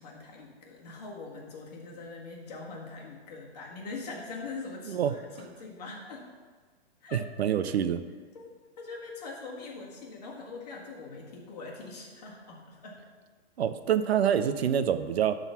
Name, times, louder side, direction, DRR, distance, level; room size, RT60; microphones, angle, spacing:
voice 1, 0.0-6.3 7.0-7.3 8.3-13.0, left 3 dB, 40° left, -2 dB, 1.7 m, -42 dB
voice 2, 7.1-8.0 13.6-15.3, right 9 dB, 70° right, 11 dB, 0.6 m, -26 dB
11.5 x 4.0 x 5.6 m, 1.5 s
hypercardioid pair, 180°, 33 cm